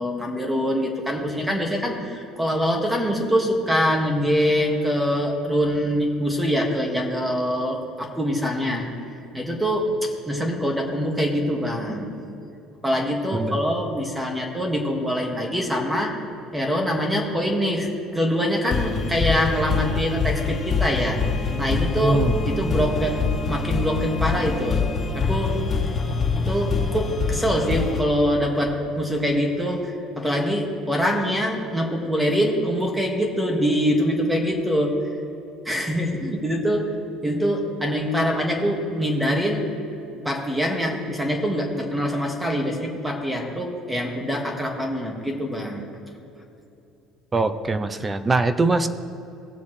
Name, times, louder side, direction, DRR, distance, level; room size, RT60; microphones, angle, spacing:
voice 1, 0.0-8.9 9.3-12.2 12.8-16.2 16.5-17.9 18.1-21.2 21.6-22.2 22.5-24.9 25.1-25.6 26.4-34.9 35.7-36.9 37.2-39.7 40.2-45.9, equal, 5° right, 1 dB, 1.9 m, -24 dB
sound 1, 18.7-28.0, left 4 dB, 40° left, 2.4 m, -25 dB
voice 2, 47.3-48.9, right 3 dB, 20° right, 11 dB, 0.6 m, -22 dB
18.0 x 7.0 x 3.2 m, 2.8 s
supercardioid pair, 100°, 0 cm